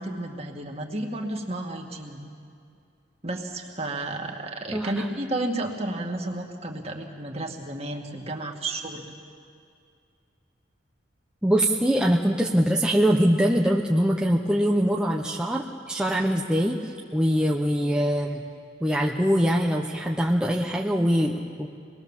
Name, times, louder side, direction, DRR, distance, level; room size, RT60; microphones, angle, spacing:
voice 1, 0.0-2.2 3.2-9.1, right 2 dB, 35° right, 2 dB, 2.2 m, -32 dB
voice 2, 4.7-5.0 11.4-18.5 18.8-21.7, equal, 5° right, -1 dB, 1.0 m, -23 dB
26.0 x 20.5 x 7.4 m, 2.3 s
head